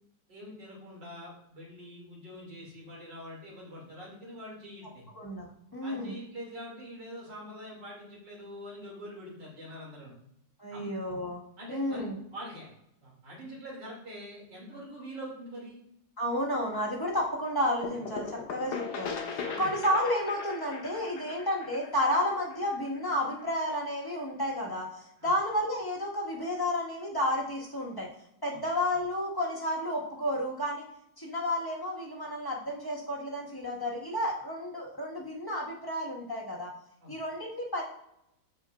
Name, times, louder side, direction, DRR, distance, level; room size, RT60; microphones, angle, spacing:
voice 1, 0.3-5.1 5.8-10.1 10.7-10.9 11.6-12.7 13.0-15.8 19.4-19.7 25.2-25.3 28.5-28.6 37.0-37.1, equal, 75° right, -4 dB, 3.4 m, -44 dB
voice 2, 5.2-6.2 10.6-12.2 16.2-28.1 28.4-30.8 31.2-36.7 37.1-37.8, left 1 dB, 15° left, -4 dB, 1.7 m, -31 dB
sound 1, 17.8-23.4, left 5 dB, 70° left, 1.5 m, -39 dB
13.5 x 4.8 x 2.6 m, 0.78 s
omnidirectional pair, 1.9 m